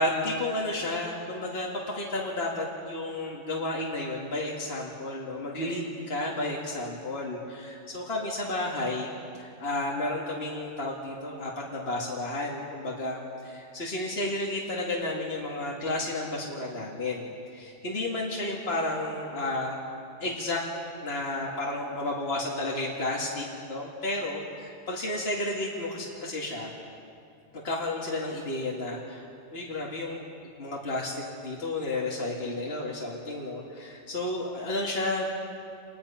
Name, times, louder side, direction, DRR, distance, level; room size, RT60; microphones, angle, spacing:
voice 1, 0.0-9.1 9.4-17.3 17.5-19.8 20.2-20.6 21.0-24.4 24.9-26.7 27.6-29.2 29.5-30.2 30.6-35.3, left 2 dB, 50° left, -3 dB, 2.4 m, -32 dB
28.5 x 20.0 x 5.7 m, 2.5 s
omnidirectional pair, 1.3 m